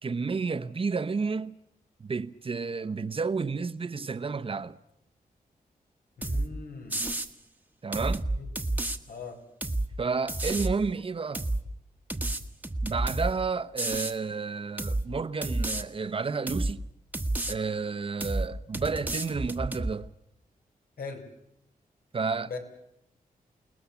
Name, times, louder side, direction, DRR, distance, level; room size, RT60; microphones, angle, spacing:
voice 1, 0.0-1.5 2.0-4.8 7.8-8.2 10.0-11.4 12.8-16.9 17.5-20.1 22.1-22.5, right 4 dB, 40° right, 0.9 m, -31 dB
voice 2, 6.2-7.0 8.4-8.5 9.1-9.4 21.0-21.2 22.5-22.6, left 4 dB, 80° left, 4.6 m, -39 dB
sound 1, 6.2-6.5 6.9-7.3 7.9-9.0 9.6-9.9 10.3-10.8 11.3-11.6 12.1-13.3 13.8-14.2 14.8-15.1 15.4-15.8 16.5-16.7 17.1-17.6 18.2-18.5 18.7-19.9, right 2 dB, 10° right, 1.3 m, -30 dB
29.0 x 19.5 x 7.1 m
wide cardioid pair, 115°, 15 cm